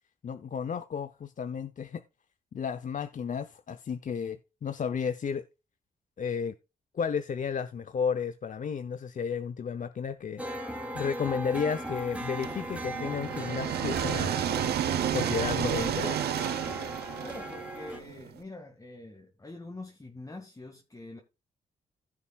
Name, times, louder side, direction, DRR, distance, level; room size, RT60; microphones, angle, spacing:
voice 1, 0.2-2.0 2.5-5.4 6.2-6.5 6.9-10.4 10.9-14.3 15.1-16.3, left 6 dB, 50° left, 0.8 m, -33 dB
sound 1, 10.4-18.0, right 1 dB, 10° right, 3.0 m, -38 dB
sound 2, 12.4-18.3, right 10 dB, 80° right, 0.9 m, -31 dB
voice 2, 17.2-21.2, left 2 dB, 20° left, 2.0 m, -45 dB
15.5 x 6.8 x 2.4 m
cardioid pair, 70°, 16 cm